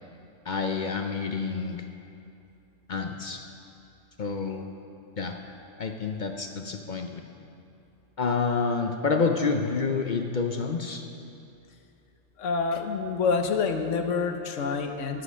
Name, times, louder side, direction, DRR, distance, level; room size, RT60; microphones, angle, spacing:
voice 1, 0.4-1.8 2.9-3.4 4.2-4.7 5.2-5.4 5.8-7.2 8.2-11.0, left 4 dB, 50° left, 4 dB, 0.6 m, -28 dB
voice 2, 12.4-15.2, left 5 dB, 75° left, 6 dB, 1.1 m, -27 dB
13.0 x 7.8 x 6.3 m, 2.6 s
omnidirectional pair, 1.3 m